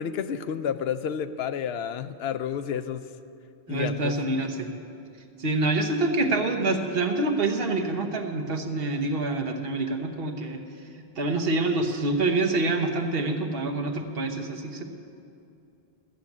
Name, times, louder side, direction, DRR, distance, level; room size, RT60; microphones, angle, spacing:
voice 1, 0.0-3.1 3.7-4.2, left 8 dB, 85° left, 11 dB, 0.8 m, -30 dB
voice 2, 3.7-4.7 5.4-10.6 11.2-14.8, right 2 dB, 70° right, 4 dB, 1.2 m, -26 dB
14.0 x 7.9 x 7.2 m, 2.5 s
omnidirectional pair, 1.0 m